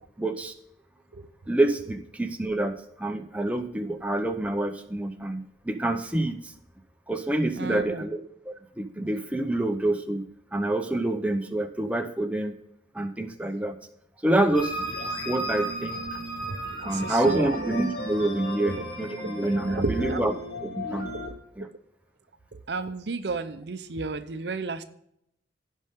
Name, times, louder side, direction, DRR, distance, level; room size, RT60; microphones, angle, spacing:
voice 1, 0.2-0.5 1.5-6.5 7.1-10.2 10.5-12.6 12.9-13.8 14.2-14.8 15.3-16.2 16.8-20.3 20.6-21.1 21.6-21.7, right 1 dB, 5° right, 5 dB, 0.6 m, -27 dB
voice 2, 7.6-8.0 16.4-17.8 18.6-18.8 19.2-20.3 21.6-21.7 22.7-24.8, right 3 dB, 65° right, 11 dB, 0.7 m, -32 dB
sound 1, 14.5-21.3, equal, 55° left, 2.5 m, -34 dB
16.0 x 5.4 x 3.6 m, 0.74 s
head